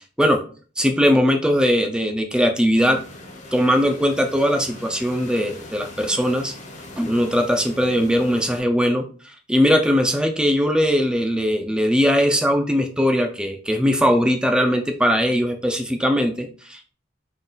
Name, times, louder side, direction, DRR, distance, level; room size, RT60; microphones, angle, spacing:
voice 1, 0.8-3.0 3.5-6.5 7.0-16.9, equal, 5° right, 4 dB, 0.4 m, -20 dB
sound 1, 2.8-8.6, left 2 dB, 45° left, 0.8 m, -41 dB
3.8 x 2.3 x 3.8 m, 0.40 s
head